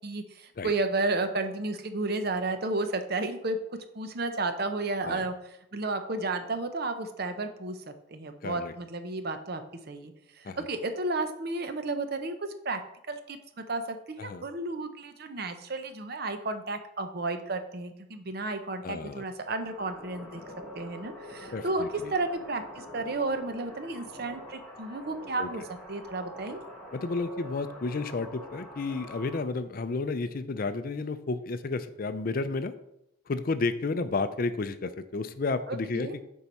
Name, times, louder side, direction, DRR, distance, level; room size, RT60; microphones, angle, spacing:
voice 1, 0.0-5.3 5.7-9.6 9.9-12.8 13.1-13.4 13.7-20.4 20.7-21.8 22.1-26.6 35.7-36.2, right 2 dB, 50° right, 8 dB, 0.7 m, -32 dB
voice 2, 8.4-8.7 10.4-10.7 14.2-14.4 18.8-19.2 21.5-22.1 25.4-25.5 26.9-32.7 33.3-36.2, left 3 dB, 45° left, 12 dB, 0.4 m, -32 dB
sound 1, 19.6-29.4, left 1 dB, 5° left, 1.9 m, -45 dB
7.1 x 4.6 x 5.3 m, 0.81 s
head